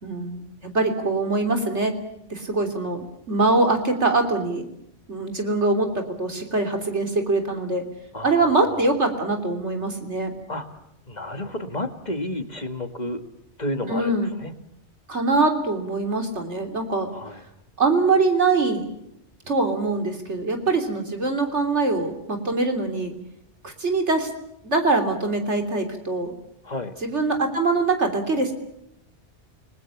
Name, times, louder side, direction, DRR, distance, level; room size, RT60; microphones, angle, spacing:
voice 1, 0.0-1.9 2.3-4.7 5.1-7.8 8.2-10.3 13.9-14.3 15.1-17.1 17.8-18.9 19.5-23.1 23.6-24.3 24.6-26.3 27.0-28.5, right 3 dB, 75° right, 5 dB, 3.6 m, -23 dB
voice 2, 8.1-8.8 10.5-10.7 11.1-13.2 13.6-14.2 14.4-14.5 17.1-17.4 26.6-26.9, left 1 dB, 35° left, 8 dB, 2.0 m, -31 dB
29.0 x 20.5 x 7.2 m, 0.79 s
omnidirectional pair, 1.2 m